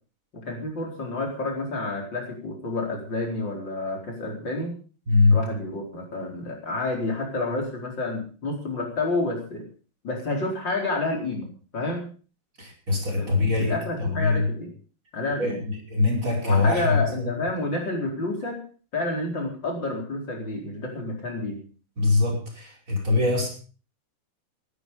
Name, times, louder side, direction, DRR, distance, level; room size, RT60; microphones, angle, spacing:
voice 1, 0.3-4.8 5.3-9.7 10.0-12.1 13.2-14.7 15.1-15.6 16.4-18.6 18.9-21.6, left 2 dB, 55° left, 1 dB, 5.2 m, -29 dB
voice 2, 5.1-5.4 12.6-14.5 15.4-17.4 22.0-23.5, left 3 dB, 35° right, -1 dB, 5.8 m, -23 dB
16.0 x 12.5 x 5.7 m, 0.39 s
omnidirectional pair, 2.4 m